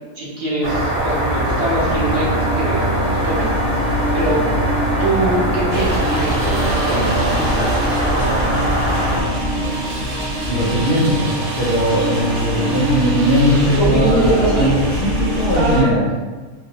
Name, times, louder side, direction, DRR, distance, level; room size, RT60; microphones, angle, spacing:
voice 1, 0.1-4.4 5.0-8.6 13.8-14.8 15.5-15.9, right 2 dB, 40° right, -7 dB, 0.5 m, -23 dB
sound 1, 0.6-9.2, right 1 dB, 60° right, 0.9 m, -21 dB
sound 2, 1.3-15.9, right 1 dB, 25° right, 1.0 m, -25 dB
sound 3, 5.7-15.8, equal, 85° right, 1.1 m, -27 dB
voice 2, 10.5-16.0, equal, 65° left, -7 dB, 0.6 m, -19 dB
2.4 x 2.0 x 2.7 m, 1.3 s
omnidirectional pair, 1.5 m